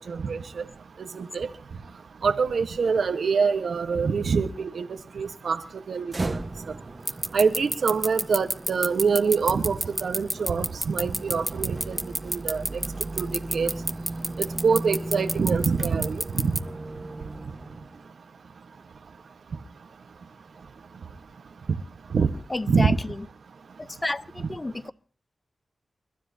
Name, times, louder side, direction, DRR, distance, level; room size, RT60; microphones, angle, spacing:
voice 1, 0.1-0.4 1.1-1.5 2.2-4.9 5.2-5.6 5.9-6.3 7.3-12.0 12.2-12.6 13.2-13.3 13.5-13.7 14.4-16.5 22.1-22.3 22.7-23.0, right 5 dB, 85° right, 1.3 m, -25 dB
sound 1, 6.1-18.1, right 2 dB, 40° right, 1.3 m, -37 dB
sound 2, 7.1-16.6, right 1 dB, 5° right, 0.7 m, -27 dB
voice 2, 22.5-23.3 23.8-24.9, left 2 dB, 30° left, 0.8 m, -31 dB
29.0 x 12.5 x 2.8 m
cardioid pair, 60°, 0 cm